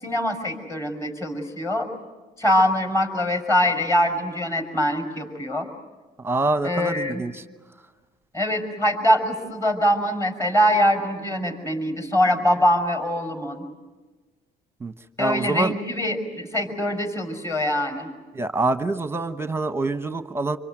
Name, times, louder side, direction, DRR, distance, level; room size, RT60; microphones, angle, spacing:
voice 1, 0.0-1.9 2.4-5.7 6.6-7.2 8.3-13.7 15.2-18.1, equal, 15° left, 6 dB, 5.6 m, -23 dB
voice 2, 6.2-7.4 14.8-14.9 15.2-15.7 18.3-20.6, right 2 dB, 15° right, 10 dB, 1.1 m, -25 dB
25.5 x 25.0 x 9.1 m, 1.3 s
cardioid pair, 110°, 17 cm